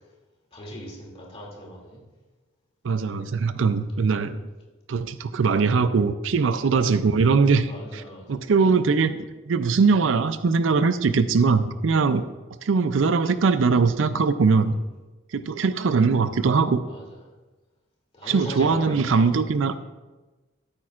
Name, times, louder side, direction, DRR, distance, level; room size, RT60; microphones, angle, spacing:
voice 1, 0.5-2.0 6.5-6.6 7.7-8.3 16.8-17.0 18.1-19.3, equal, 30° left, -3 dB, 2.5 m, -38 dB
voice 2, 2.8-4.4 4.9-8.0 8.3-9.1 9.5-12.3 12.6-14.8 15.3-16.8 18.2-19.7, right 4 dB, 75° right, 12 dB, 0.5 m, -21 dB
13.5 x 8.8 x 2.5 m, 1.2 s
head